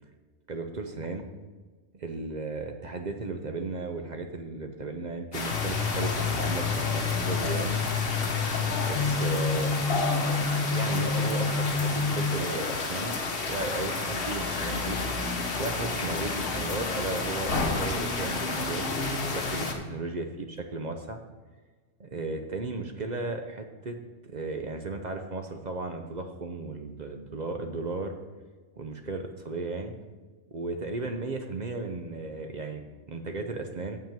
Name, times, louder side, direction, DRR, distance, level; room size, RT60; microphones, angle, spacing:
voice 1, 0.5-1.3 1.9-7.8 8.7-9.8 10.7-13.2 13.4-15.0 15.6-21.2 22.0-24.0 24.2-28.2 28.8-29.9 30.5-34.0, right 3 dB, 45° right, 5 dB, 0.7 m, -35 dB
sound 1, 5.3-19.7, left 3 dB, 50° left, 1.2 m, -31 dB
sound 2, 5.5-12.4, left 5 dB, 85° left, 1.0 m, -29 dB
6.9 x 6.1 x 7.4 m, 1.4 s
omnidirectional pair, 1.3 m